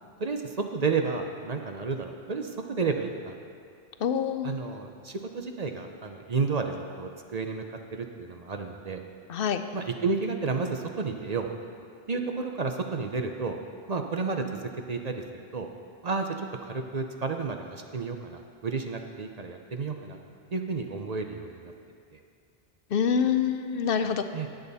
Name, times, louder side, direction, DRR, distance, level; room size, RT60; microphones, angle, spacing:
voice 1, 0.2-3.3 4.4-7.6 7.9-9.0 9.7-11.5 12.1-13.6 13.9-14.6 14.9-15.7 16.0-16.3 16.6-20.2 20.5-21.7 22.1-22.2 24.3-24.5, right 4 dB, 45° right, 4 dB, 0.7 m, -31 dB
voice 2, 4.0-4.5 9.3-9.6 22.9-24.2, left 7 dB, 70° left, 9 dB, 0.8 m, -26 dB
17.0 x 8.0 x 4.1 m, 2.3 s
omnidirectional pair, 1.0 m